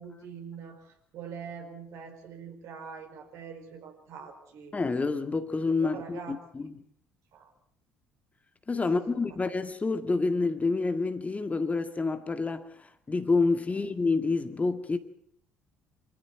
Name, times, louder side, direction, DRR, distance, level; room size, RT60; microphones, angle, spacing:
voice 1, 0.0-4.7 5.7-6.4 7.3-7.5 8.8-9.4 13.7-13.8, right 6 dB, 60° right, 4.9 m, -44 dB
voice 2, 4.7-6.8 8.7-12.7 13.1-15.0, left 3 dB, 25° left, 2.1 m, -28 dB
25.0 x 14.5 x 9.3 m
hypercardioid pair, 55°, 6 cm